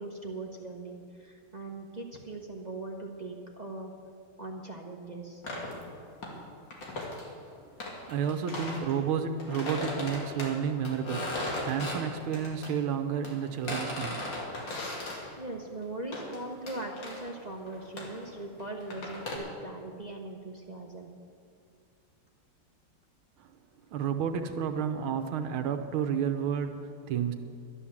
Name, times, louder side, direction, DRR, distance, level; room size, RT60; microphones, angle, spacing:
voice 1, 0.0-3.9 4.4-5.4 15.4-21.1, right 2 dB, 30° right, 1 dB, 0.7 m, -40 dB
sound 1, 5.4-6.4 6.7-7.3 7.8-9.0 9.4-12.7 13.2-15.3 16.1-16.4 16.7-17.3 17.7-19.4, left 1 dB, 60° left, 2.8 m, -37 dB
voice 2, 8.1-14.2 23.4-23.5 23.9-27.3, right 7 dB, 85° right, 7 dB, 1.7 m, -31 dB
12.0 x 11.5 x 7.3 m, 2.3 s
omnidirectional pair, 2.3 m